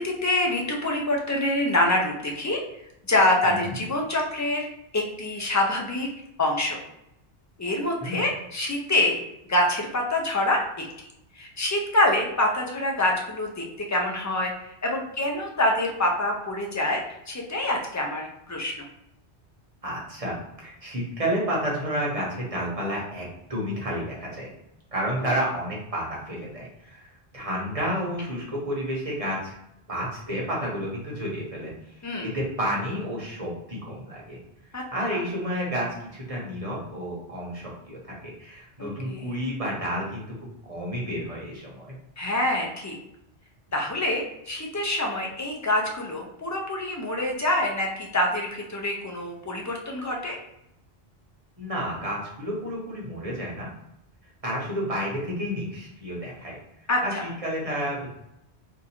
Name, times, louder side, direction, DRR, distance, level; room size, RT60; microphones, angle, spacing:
voice 1, 0.0-2.6 3.1-4.7 4.9-6.1 6.4-6.8 7.6-9.2 9.5-10.6 11.3-18.8 25.2-25.3 32.0-32.3 34.7-34.8 35.1-35.2 38.8-39.3 42.2-43.0 43.7-50.4 56.9-57.3, left 1 dB, 25° left, 0 dB, 0.3 m, -26 dB
voice 2, 3.4-3.8 8.0-8.2 19.8-24.5 24.9-29.6 29.9-34.4 34.7-41.9 51.6-53.7 54.4-56.5 57.0-58.1, equal, 35° right, -4 dB, 1.0 m, -31 dB
2.7 x 2.4 x 4.2 m, 0.83 s
omnidirectional pair, 1.1 m